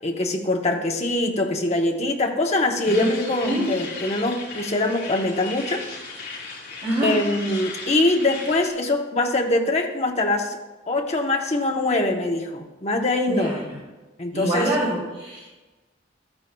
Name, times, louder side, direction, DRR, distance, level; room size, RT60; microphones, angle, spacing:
voice 1, 0.0-5.8 7.0-10.6 10.9-13.5 14.2-14.7, left 2 dB, 35° left, 2 dB, 0.9 m, -23 dB
sound 1, 2.8-8.7, left 4 dB, 60° left, 3.3 m, -36 dB
voice 2, 13.3-13.8 14.3-15.4, equal, 35° right, -7 dB, 2.7 m, -25 dB
13.5 x 8.9 x 2.3 m, 1.2 s
head